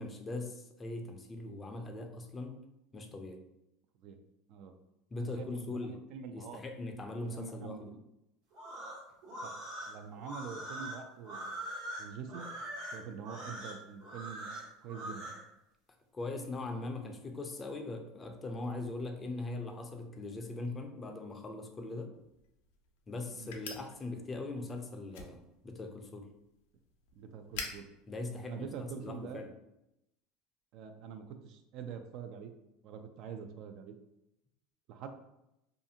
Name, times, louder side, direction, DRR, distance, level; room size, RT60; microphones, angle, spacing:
voice 1, 0.0-2.6 2.9-3.4 5.1-6.0 6.3-7.9 16.1-22.1 23.1-25.4 25.6-26.3 28.1-29.5, left 2 dB, 25° left, 4 dB, 0.4 m, -40 dB
voice 2, 5.2-6.6 7.3-8.0 9.4-9.5 9.9-11.6 12.0-12.4 12.9-14.5 14.8-15.3 23.4-23.5 27.2-27.8 28.4-29.4 30.7-32.5 32.8-33.9 34.9-35.1, right 7 dB, 60° right, 7 dB, 0.3 m, -45 dB
sound 1, 8.5-15.4, right 1 dB, 75° right, 1.2 m, -43 dB
sound 2, 22.1-29.3, left 5 dB, 80° left, 0.4 m, -49 dB
2.4 x 2.4 x 2.7 m, 0.86 s
supercardioid pair, 110°, 0 cm